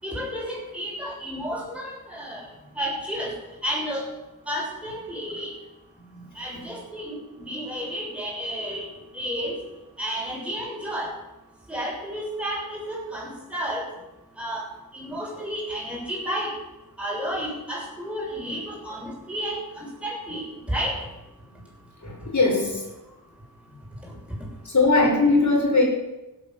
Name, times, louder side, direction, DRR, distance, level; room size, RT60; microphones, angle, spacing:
voice 1, 0.0-2.4 2.8-3.3 3.6-4.0 4.5-5.5 6.4-8.9 9.1-9.6 10.0-11.1 11.7-13.9 14.4-14.6 14.9-16.5 17.0-21.0 24.0-24.1, equal, 5° right, -4 dB, 7.0 m, -31 dB
voice 2, 6.1-6.8 15.1-15.2 22.0-22.9 24.6-25.8, left 3 dB, 50° left, -1 dB, 5.3 m, -21 dB
16.5 x 8.3 x 7.7 m, 1.0 s
wide cardioid pair, 120°, 37 cm